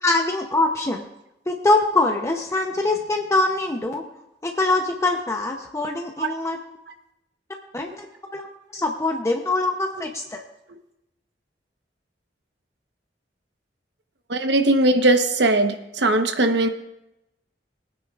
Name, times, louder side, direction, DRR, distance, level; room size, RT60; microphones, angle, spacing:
voice 1, 0.0-1.0 1.5-4.0 4.4-6.6 7.7-10.4, left 2 dB, 15° left, 3 dB, 0.7 m, -23 dB
voice 2, 14.3-16.7, right 2 dB, 75° right, 6 dB, 1.0 m, -19 dB
21.0 x 9.5 x 2.4 m, 0.87 s
head